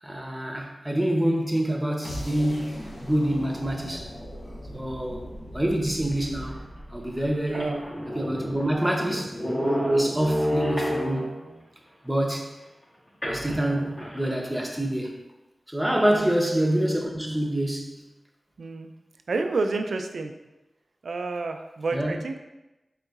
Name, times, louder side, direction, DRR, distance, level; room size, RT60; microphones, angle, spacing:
voice 1, 0.0-4.1 4.7-5.3 5.5-6.5 6.9-9.4 9.9-11.3 12.0-12.5 13.3-15.2 15.7-18.0 21.9-22.2, right 1 dB, 10° right, 1 dB, 0.6 m, -26 dB
sound 1, 2.0-8.0, equal, 60° left, 1.0 m, -39 dB
sound 2, 6.5-6.6 7.2-7.3 7.5-11.5 13.2-14.3, equal, 45° left, 1.3 m, -29 dB
voice 2, 7.5-7.8 16.1-16.3 18.6-18.9 19.3-20.3 21.0-22.4, right 3 dB, 80° right, 6 dB, 0.3 m, -29 dB
4.0 x 3.6 x 2.3 m, 1.0 s
cardioid pair, 55°, 0 cm